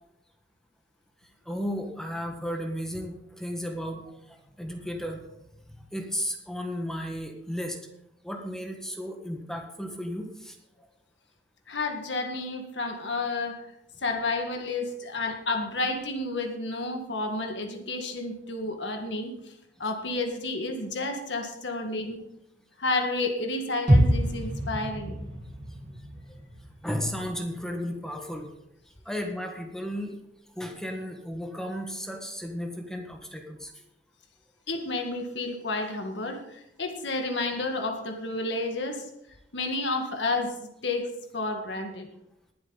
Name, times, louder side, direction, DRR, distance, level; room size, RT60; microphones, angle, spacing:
voice 1, 1.4-5.2 5.7-7.8 8.2-10.6 26.8-28.5 29.0-30.1 30.5-33.8, equal, 5° left, 3 dB, 1.5 m, -34 dB
voice 2, 11.7-13.6 14.0-19.5 19.8-22.2 22.8-25.2 34.7-39.1 39.5-42.1, left 2 dB, 75° left, 4 dB, 1.8 m, -31 dB
sound 1, 23.9-27.8 28.1-28.2, equal, 25° right, 4.5 m, -26 dB
20.5 x 7.8 x 4.0 m, 0.82 s
head